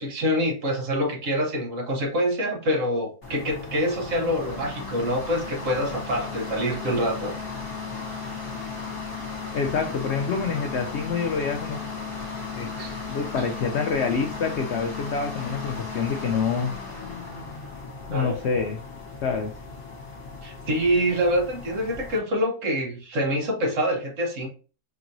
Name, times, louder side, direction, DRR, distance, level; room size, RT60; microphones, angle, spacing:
voice 1, 0.0-7.3 12.6-13.0 18.1-18.4 20.4-24.5, equal, 55° right, 1.1 m, -26 dB
sound 1, 3.2-22.2, left 4 dB, 40° left, 1.4 m, -36 dB
voice 2, 9.5-11.8 12.6-12.7 13.1-16.7 18.1-18.8 19.2-19.5, left 5 dB, 80° left, 0.6 m, -26 dB
5.3 x 2.9 x 2.6 m
omnidirectional pair, 1.8 m